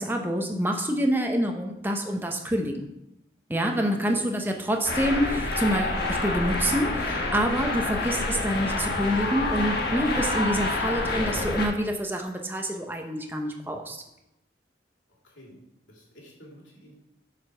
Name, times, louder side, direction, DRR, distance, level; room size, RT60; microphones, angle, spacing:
voice 1, 0.0-2.8 3.5-14.0, equal, 10° right, 3 dB, 0.8 m, -27 dB
voice 2, 3.9-4.8 15.2-15.6 15.9-16.9, equal, 90° left, -3 dB, 2.9 m, -48 dB
sound 1, 4.8-11.7, left 2 dB, 55° left, 1.4 m, -28 dB
8.0 x 5.1 x 5.7 m, 0.87 s
head